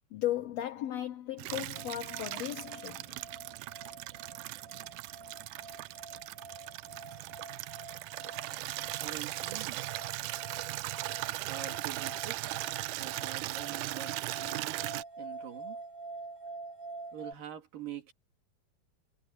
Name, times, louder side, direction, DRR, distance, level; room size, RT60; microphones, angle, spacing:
voice 1, 0.1-3.2, left 13 dB, 90° left, 1.4 m, -36 dB
Water tap faucet / Liquid, 1.4-15.0, right 18 dB, 85° right, 1.8 m, -38 dB
sound 1, 1.7-17.3, right 3 dB, 20° right, 2.8 m, -47 dB
voice 2, 9.0-9.8 11.5-12.6 13.0-15.8 17.1-18.1, right 10 dB, 70° right, 4.6 m, -45 dB
omnidirectional pair, 4.1 m